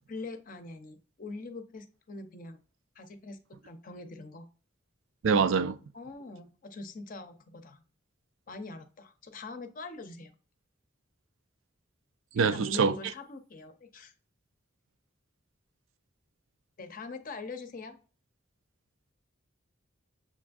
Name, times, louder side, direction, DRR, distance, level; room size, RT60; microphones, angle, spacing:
voice 1, 0.1-2.6 3.0-4.5 5.9-7.8 8.5-10.3 12.3-14.1 16.8-18.0, left 3 dB, 45° left, 0.6 m, -43 dB
voice 2, 5.2-5.8 12.3-12.9, right 5 dB, 80° right, 0.4 m, -24 dB
6.8 x 2.5 x 2.3 m
head